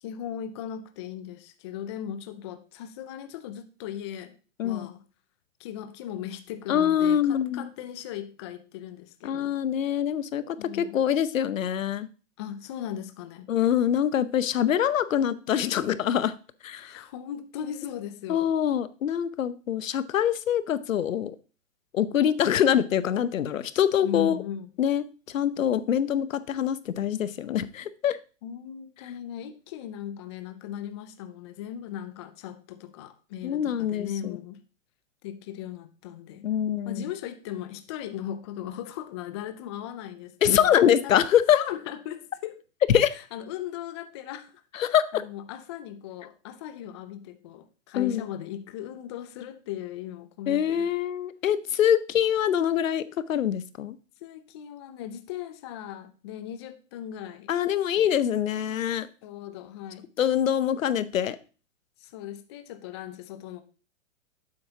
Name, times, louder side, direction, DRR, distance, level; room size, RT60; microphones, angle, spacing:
voice 1, 0.0-4.4 4.6-5.0 5.6-9.6 10.6-11.0 12.4-13.5 16.8-18.5 24.0-24.7 28.4-34.6 35.2-36.5 36.8-40.7 41.0-41.3 41.5-42.6 43.1-50.9 54.2-57.5 59.2-60.1 62.0-63.6, left 10 dB, 25° left, 0.4 m, -38 dB
voice 2, 6.7-7.7 9.2-12.1 13.5-16.3 16.6-17.0 18.3-21.4 21.9-24.4 24.8-28.2 33.4-34.4 36.4-37.1 40.4-41.6 42.9-43.2 44.7-45.2 48.0-48.2 50.5-54.0 57.5-59.1 60.2-61.4, left 9 dB, 85° left, 0.8 m, -24 dB
9.4 x 7.8 x 2.8 m
hypercardioid pair, 145°, 39 cm